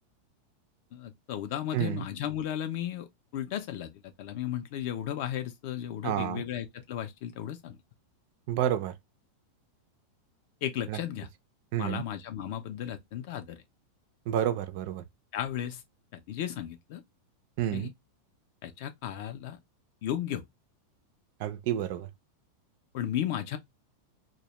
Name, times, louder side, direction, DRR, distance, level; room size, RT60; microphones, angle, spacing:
voice 1, 0.9-3.1 3.3-3.9 4.2-7.8 10.6-11.3 11.8-13.6 15.3-15.8 16.1-17.0 17.7-17.9 18.6-19.6 20.0-20.4 22.9-23.6, left 11 dB, 45° left, 0.3 m, -34 dB
voice 2, 1.7-2.1 6.0-6.4 8.5-8.9 10.9-11.0 11.7-12.0 14.3-15.0 17.6-17.9 21.4-22.1, right 11 dB, 40° right, 0.3 m, -29 dB
2.1 x 2.0 x 2.8 m
supercardioid pair, 175°, 0 cm